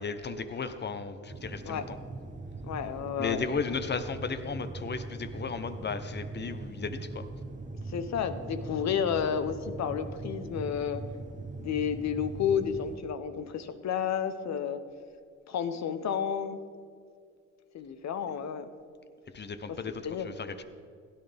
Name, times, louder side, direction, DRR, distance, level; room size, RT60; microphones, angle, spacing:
voice 1, 0.0-2.0 3.2-7.2 19.3-20.6, left 5 dB, 35° left, 9 dB, 0.9 m, -35 dB
sound 1, 1.3-13.0, right 3 dB, 25° right, 0.9 m, -41 dB
voice 2, 2.6-3.4 7.9-11.0 11.6-14.8 15.5-16.6 17.7-18.7 20.0-20.3, left 8 dB, 65° left, 10 dB, 1.0 m, -31 dB
16.5 x 10.5 x 3.5 m, 2.2 s
cardioid pair, 90°, 30 cm